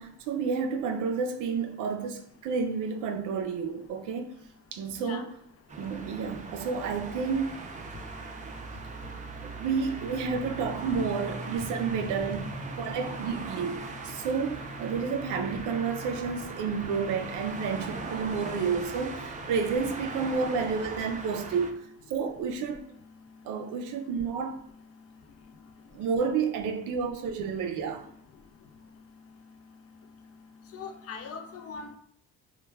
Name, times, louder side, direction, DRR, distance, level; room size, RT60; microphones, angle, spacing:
voice 1, 0.0-4.3 4.7-5.3 5.8-7.6 9.4-12.4 12.8-21.8 22.1-22.8 23.4-24.6 25.9-28.1, right 5 dB, 85° right, 0.5 m, -30 dB
sound 1, 5.7-21.7, right 3 dB, 25° right, 0.4 m, -39 dB
voice 2, 30.7-32.0, left 5 dB, 50° left, 0.4 m, -40 dB
2.2 x 2.2 x 3.1 m
cardioid pair, 90°, 30 cm